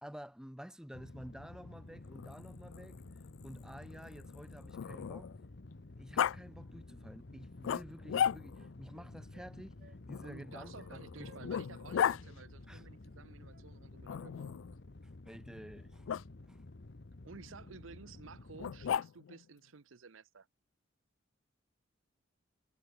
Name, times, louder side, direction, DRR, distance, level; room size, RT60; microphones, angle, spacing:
voice 1, 0.0-3.0 3.4-5.3 6.0-11.5 12.7-12.8 15.0-16.1 16.4-16.6, equal, 5° right, 0.9 m, -51 dB
sound 1, 0.9-19.0, left 2 dB, 55° left, 0.9 m, -52 dB
Growling, 2.1-5.5 6.2-6.4 7.6-8.7 10.1-12.2 14.1-14.7 16.1-16.2 18.6-19.4, left 8 dB, 75° left, 0.3 m, -36 dB
Wind instrument woodwind instrument, 7.3-7.4 7.7-9.5 9.8-10.0 10.3-10.4 10.8-11.0 11.2-11.9 12.2-14.1, right 3 dB, 50° right, 1.7 m, -65 dB
voice 2, 10.2-14.7 17.2-20.5, right 4 dB, 85° right, 0.8 m, -53 dB
head